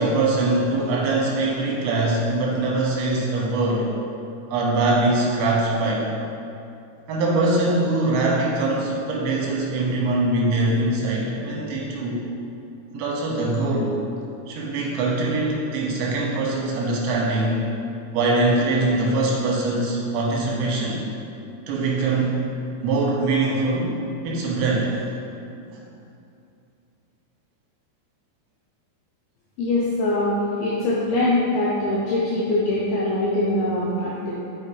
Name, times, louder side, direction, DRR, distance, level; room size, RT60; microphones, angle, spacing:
voice 1, 0.0-3.9 4.5-6.1 7.1-12.2 12.9-13.9 14.5-17.6 18.1-21.0 21.7-22.4 22.8-23.9 24.2-24.9 25.7-25.8, right 2 dB, 85° right, -3 dB, 3.4 m, -22 dB
voice 2, 29.6-34.3, left 2 dB, 85° left, -6 dB, 2.2 m, -23 dB
7.7 x 5.3 x 3.2 m, 2.6 s
omnidirectional pair, 5.2 m